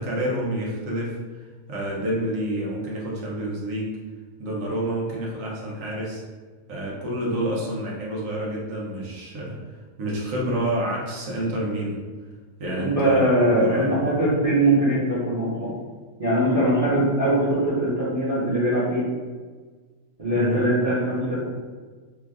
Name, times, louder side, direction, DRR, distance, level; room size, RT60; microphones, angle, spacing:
voice 1, 0.0-4.0 4.4-6.2 6.7-9.6 10.0-12.0 12.6-14.2 20.3-20.6, right 1 dB, 75° right, -3 dB, 1.1 m, -28 dB
voice 2, 12.8-15.7 16.2-19.0 20.2-21.4, right 1 dB, 30° right, -11 dB, 0.9 m, -21 dB
3.0 x 2.4 x 3.4 m, 1.4 s
omnidirectional pair, 1.4 m